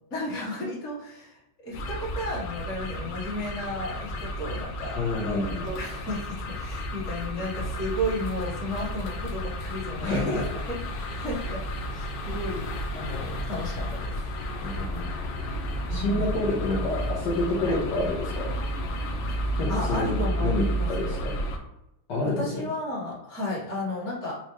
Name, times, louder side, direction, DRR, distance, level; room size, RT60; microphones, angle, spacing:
voice 1, 0.1-5.0 5.6-10.4 11.0-11.6 11.9-14.1 15.9-16.4 17.6-17.8 19.4-21.2 22.2-24.3, left 1 dB, 40° left, -7 dB, 1.4 m, -33 dB
sound 1, 1.7-21.6, equal, 85° left, 0.8 m, -32 dB
voice 2, 4.9-5.7 10.0-10.4 14.6-15.0 15.9-18.5 19.6-21.4 22.1-22.6, left 2 dB, 65° left, -7 dB, 1.3 m, -28 dB
4.4 x 2.1 x 2.9 m, 0.90 s
omnidirectional pair, 2.2 m